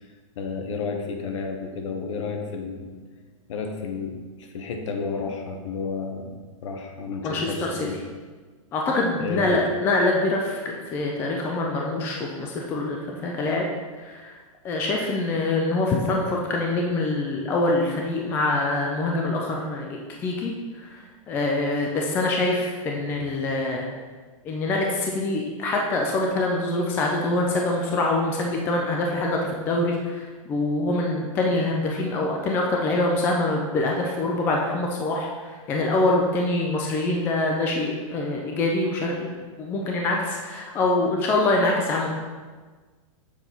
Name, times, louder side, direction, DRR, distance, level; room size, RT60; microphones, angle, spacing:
voice 1, 0.4-3.0 3.5-8.0 9.2-9.6 23.1-23.3, left 5 dB, 60° left, 4 dB, 1.0 m, -32 dB
voice 2, 7.2-7.9 8.7-13.7 14.0-14.4 14.6-23.9 24.4-42.1, left 2 dB, 10° left, 0 dB, 0.4 m, -25 dB
7.0 x 4.0 x 4.3 m, 1.4 s
supercardioid pair, 165°, 18 cm